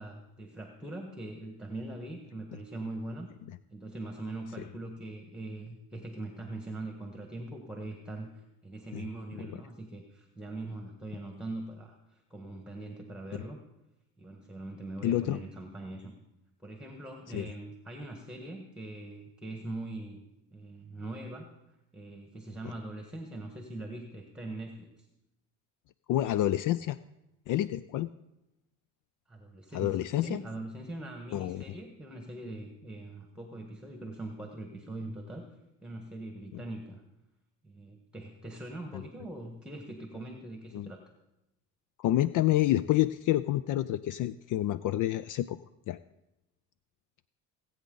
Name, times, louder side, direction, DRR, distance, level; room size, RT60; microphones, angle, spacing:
voice 1, 0.0-3.3 3.7-13.6 14.2-16.1 16.6-20.2 20.5-21.5 21.9-25.1 29.3-35.4 35.8-37.0 37.6-41.0, right 2 dB, ahead, 3 dB, 1.5 m, -42 dB
voice 2, 15.0-15.4 17.3-17.5 26.1-27.0 27.5-28.1 29.7-30.4 31.3-31.6 36.5-36.6 38.9-39.0 40.7-40.9 42.0-45.6 45.9-46.0, left 14 dB, 55° left, 16 dB, 0.4 m, -28 dB
19.0 x 8.7 x 3.9 m, 0.93 s
supercardioid pair, 90°, 37 cm